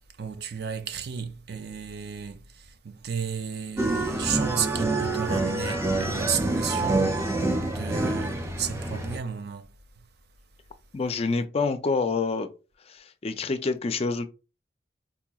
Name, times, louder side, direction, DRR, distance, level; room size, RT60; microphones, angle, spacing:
voice 1, 0.2-7.2 7.6-9.7, right 7 dB, 60° right, 0.5 m, -33 dB
sound 1, 3.8-9.2, right 2 dB, 15° right, 0.6 m, -27 dB
voice 2, 10.9-12.5 12.9-14.3, left 4 dB, 35° left, 0.4 m, -27 dB
4.1 x 2.9 x 2.3 m
head